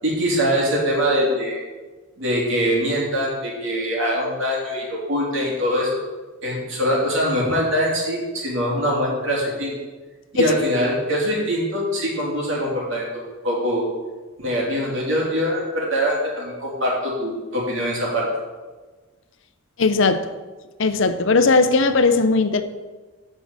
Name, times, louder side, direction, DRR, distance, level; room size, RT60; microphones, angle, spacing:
voice 1, 0.0-1.6 2.2-6.0 6.4-9.7 10.3-13.8 14.4-18.3, equal, 60° right, -4 dB, 3.3 m, -23 dB
voice 2, 19.8-20.2 20.8-22.6, left 3 dB, 60° left, 10 dB, 0.6 m, -17 dB
9.0 x 5.5 x 7.4 m, 1.3 s
head